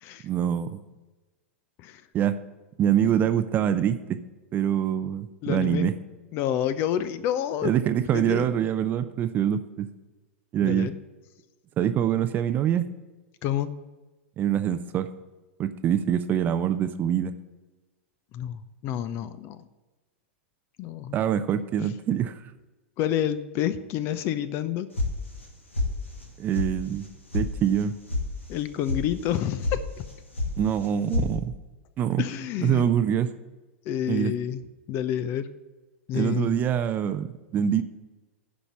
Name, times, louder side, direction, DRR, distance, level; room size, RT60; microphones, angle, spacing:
voice 1, 0.2-0.8 2.1-2.4 2.8-4.2 4.5-5.9 7.6-9.9 10.5-10.9 11.8-12.8 14.4-15.1 15.6-17.3 21.1-22.4 26.4-27.1 27.3-27.9 30.6-31.5 32.0-32.2 32.6-33.3 34.1-34.3 36.1-37.8, right 9 dB, 25° right, 11 dB, 0.5 m, -24 dB
voice 2, 5.4-5.9 6.3-7.8 8.1-8.5 10.6-11.0 13.4-13.7 18.3-19.6 20.8-21.1 23.0-24.9 28.5-29.8 32.2-32.9 33.9-34.6 34.9-35.5 36.1-36.6, left 10 dB, 35° left, 14 dB, 0.6 m, -28 dB
sound 1, 25.0-25.5 25.7-26.3 26.5-26.7 27.0-27.5 27.7-28.2 28.5-29.0 29.3-29.8 30.0-30.5 30.8-31.3, left 2 dB, 80° left, 2.0 m, -28 dB
10.0 x 5.4 x 7.3 m, 1.2 s
figure-of-eight pair, 95°, 7 cm